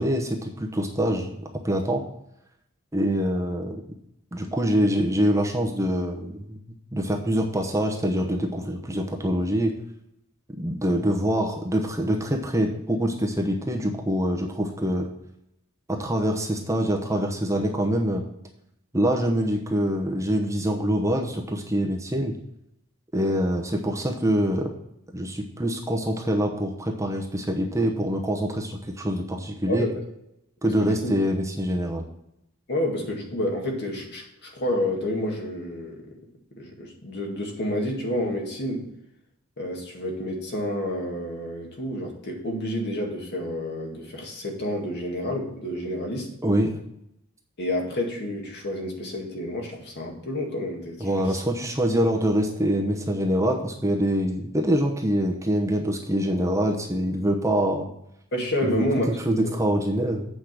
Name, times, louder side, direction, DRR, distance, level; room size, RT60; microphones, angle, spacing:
voice 1, 0.0-1.3 1.6-2.0 2.9-3.8 4.3-6.6 6.9-9.7 10.6-15.1 15.9-18.2 18.9-22.3 23.1-24.7 25.1-29.9 30.6-32.0 46.4-46.7 51.0-57.9 58.7-58.8 59.2-60.3, equal, 15° right, 1 dB, 0.9 m, -25 dB
voice 2, 29.7-30.0 30.8-31.1 32.7-36.2 36.5-38.9 39.6-46.3 47.6-51.4 58.3-59.5, left 1 dB, 55° left, 0 dB, 2.0 m, -29 dB
8.3 x 5.1 x 6.1 m, 0.81 s
head